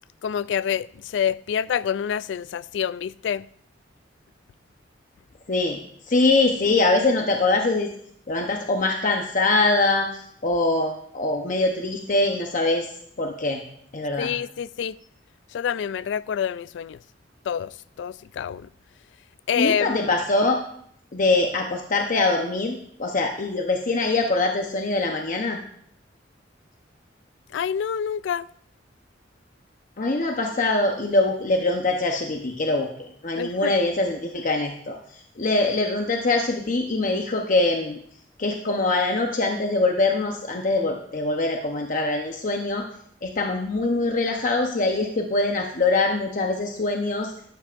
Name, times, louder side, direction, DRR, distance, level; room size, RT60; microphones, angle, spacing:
voice 1, 0.2-3.5 14.2-15.0 15.5-17.0 17.5-18.7 19.5-20.1 27.5-28.5 33.4-33.7, left 8 dB, 70° left, 0.3 m, -27 dB
voice 2, 5.5-5.8 6.1-7.9 8.3-12.9 13.2-13.6 13.9-14.3 19.6-20.6 21.1-25.6 30.0-32.9 33.2-35.0 35.4-38.0 38.4-42.8 43.2-47.3, left 2 dB, 45° left, 0.9 m, -23 dB
13.0 x 11.5 x 2.5 m
head